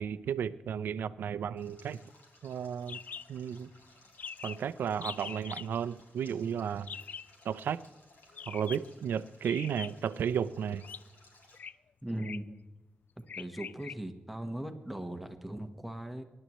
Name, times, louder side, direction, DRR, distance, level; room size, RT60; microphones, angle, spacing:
voice 1, 0.0-2.0 2.4-3.0 3.3-3.7 4.4-6.9 7.4-7.8 8.5-10.8, right 8 dB, 85° right, 15 dB, 0.5 m, -33 dB
Stream, 1.6-11.6, left 2 dB, 75° left, 3.8 m, -61 dB
sound 1, 2.9-3.3 3.6-3.7 3.9-4.0 4.2-4.6 5.0-5.7 6.9-7.3 8.3-8.9 9.4-10.1 10.8-11.0 11.5-11.7 12.2-12.5 13.3-13.9, left 6 dB, 55° left, 0.3 m, -43 dB
voice 2, 12.0-12.5 13.4-16.2, right 1 dB, ahead, 6 dB, 1.2 m, -39 dB
24.0 x 11.0 x 3.1 m, 1.1 s
wide cardioid pair, 115°, 3 cm